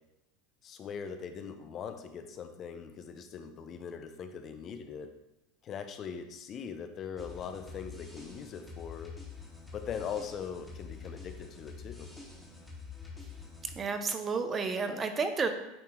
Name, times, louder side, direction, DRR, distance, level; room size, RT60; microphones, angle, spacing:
voice 1, 0.6-5.1 5.6-9.1 9.7-12.1, left 7 dB, 40° left, 8 dB, 0.6 m, -41 dB
sound 1, 7.2-13.8, left 5 dB, 5° left, 1.6 m, -47 dB
voice 2, 13.8-15.5, right 4 dB, 30° right, 8 dB, 0.7 m, -31 dB
8.8 x 2.9 x 3.7 m, 0.92 s
hypercardioid pair, 100°, 0 cm